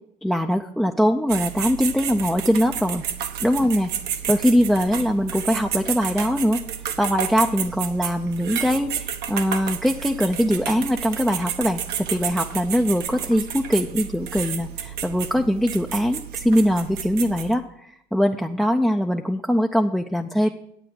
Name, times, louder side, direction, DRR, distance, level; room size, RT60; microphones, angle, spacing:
voice 1, 0.2-3.0 3.4-3.9 4.2-6.6 7.0-20.5, equal, ahead, 4 dB, 0.5 m, -22 dB
sound 1, 1.3-17.5, right 9 dB, 75° right, 1.1 m, -31 dB
10.0 x 8.3 x 6.2 m, 0.74 s
cardioid pair, 110°, 17 cm